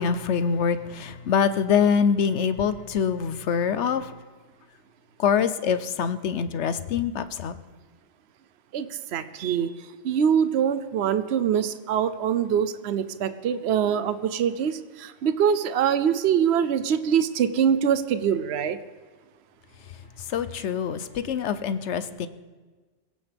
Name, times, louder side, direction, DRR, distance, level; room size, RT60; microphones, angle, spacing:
voice 1, 0.0-4.1 5.2-7.5 20.3-22.3, left 7 dB, 75° left, 1.0 m, -24 dB
voice 2, 8.7-9.7 10.0-18.8, right 8 dB, 65° right, 1.0 m, -24 dB
26.0 x 16.0 x 3.5 m
omnidirectional pair, 1.2 m